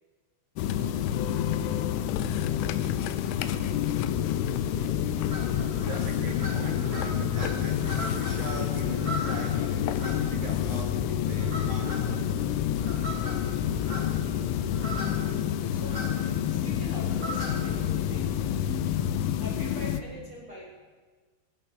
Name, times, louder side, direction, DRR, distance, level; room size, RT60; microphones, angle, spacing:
sound 1, 0.6-20.0, left 10 dB, 85° left, 3.2 m, -28 dB
voice 1, 4.7-5.1 5.8-12.2, right 4 dB, 70° right, 2 dB, 2.2 m, -41 dB
sound 2, 5.0-18.8, equal, 10° right, 4.0 m, -40 dB
sound 3, 6.4-9.5 9.7-12.3, left 3 dB, 60° left, 3.8 m, -45 dB
voice 2, 15.7-18.4 19.0-20.7, equal, 50° right, -3 dB, 1.6 m, -44 dB
18.5 x 16.5 x 4.0 m, 1.4 s
omnidirectional pair, 5.5 m